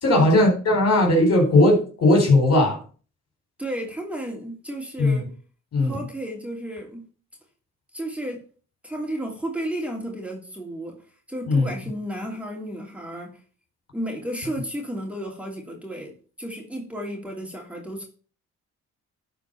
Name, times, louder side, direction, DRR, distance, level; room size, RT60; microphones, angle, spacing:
voice 1, 0.0-2.8 5.0-5.2 5.7-6.0 11.5-11.7, left 1 dB, 55° left, 4.4 m, -18 dB
voice 2, 3.6-5.3 5.8-7.1 7.9-8.4 8.8-11.0 11.3-13.4 13.9-16.1 16.4-18.0, right 1 dB, 5° right, 2.9 m, -33 dB
11.5 x 4.6 x 5.6 m
cardioid pair, 90°, 30 cm